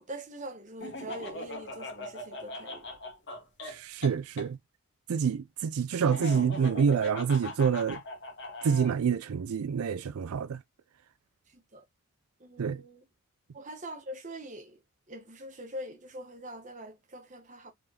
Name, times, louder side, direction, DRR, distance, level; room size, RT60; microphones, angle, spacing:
voice 1, 0.0-2.9 11.7-11.8 12.4-13.0 13.5-14.8 15.1-17.7, right 1 dB, 35° right, 1.1 m, -43 dB
Laughter, 0.8-4.5 6.0-8.9, left 1 dB, 55° left, 1.4 m, -40 dB
voice 2, 3.6-4.6 5.1-8.0 8.6-10.6 12.6-12.8, right 6 dB, 80° right, 0.4 m, -27 dB
5.1 x 3.7 x 2.8 m
head